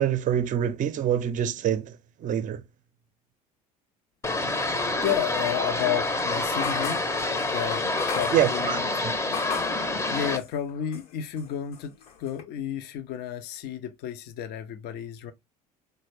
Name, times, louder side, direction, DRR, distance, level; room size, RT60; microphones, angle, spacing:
voice 1, 0.0-2.6 8.3-9.1, right 10 dB, 40° right, 0.6 m, -26 dB
sound 1, 4.2-10.4, left 2 dB, 15° left, 0.7 m, -27 dB
voice 2, 4.5-7.0 7.5-8.9 10.1-15.3, left 10 dB, 55° left, 0.6 m, -32 dB
sound 2, 6.6-9.8 10.3-11.1 11.4-12.4, left 7 dB, 70° left, 1.0 m, -38 dB
4.0 x 2.2 x 3.2 m
hypercardioid pair, 60°, 20 cm